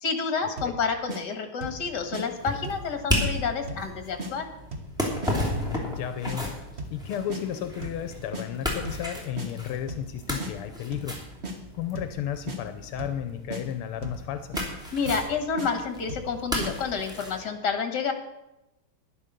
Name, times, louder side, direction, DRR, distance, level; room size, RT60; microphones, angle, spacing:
voice 1, 0.0-4.5 14.9-18.1, left 5 dB, 55° left, 7 dB, 2.0 m, -29 dB
sound 1, 0.6-0.8 1.1-1.2 1.6-1.8 2.1-2.2 2.6-2.9 3.2-3.3 3.7-3.9 4.2-4.3 4.7-4.9 5.2-5.4 5.7-6.0 6.3-6.4 6.8-7.0 7.3-7.4 7.8-8.0 8.3-8.5 8.8-9.1 9.4-9.5 9.9-10.1 10.4-10.5 10.9-11.1 11.4-11.6 11.9-12.2 12.5-12.6 13.0-13.2 13.5-13.6 14.0-14.2 14.5-14.7 15.1-15.3 15.6-15.7 16.1-16.3 16.6-16.7, right 1 dB, 35° right, 1.6 m, -35 dB
sound 2, 1.6-17.4, left 1 dB, ahead, 2.9 m, -34 dB
voice 2, 5.5-6.5 6.9-11.2 11.7-14.7, left 10 dB, 80° left, 9 dB, 1.6 m, -33 dB
11.0 x 10.5 x 6.7 m, 0.97 s
omnidirectional pair, 2.4 m